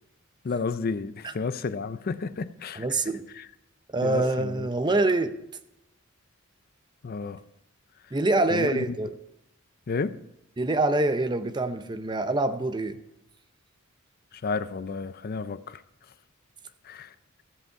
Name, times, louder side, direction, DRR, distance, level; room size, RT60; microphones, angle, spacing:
voice 1, 0.4-2.9 3.4-3.5 4.0-4.7 7.0-7.4 8.5-9.0 9.9-10.2 14.3-15.8 16.8-17.4, left 4 dB, 45° left, 0.4 m, -32 dB
voice 2, 2.8-3.3 3.9-5.3 8.1-9.1 10.6-13.0, right 2 dB, 20° right, 0.7 m, -25 dB
14.5 x 8.2 x 4.6 m
head